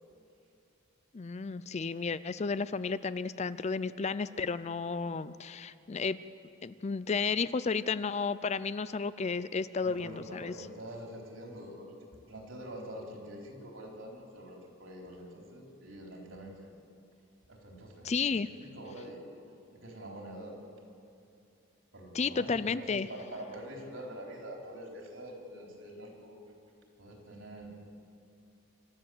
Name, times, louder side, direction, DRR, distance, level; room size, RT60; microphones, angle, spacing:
voice 1, 1.1-6.2 6.6-10.5 18.0-18.5 22.1-23.1, left 5 dB, 30° left, 15 dB, 0.4 m, -32 dB
voice 2, 9.8-11.9 12.3-16.7 17.5-19.2 19.7-20.6 21.9-26.4 27.0-27.7, right 1 dB, 70° right, 1 dB, 4.0 m, -45 dB
25.5 x 13.0 x 7.8 m, 2.6 s
head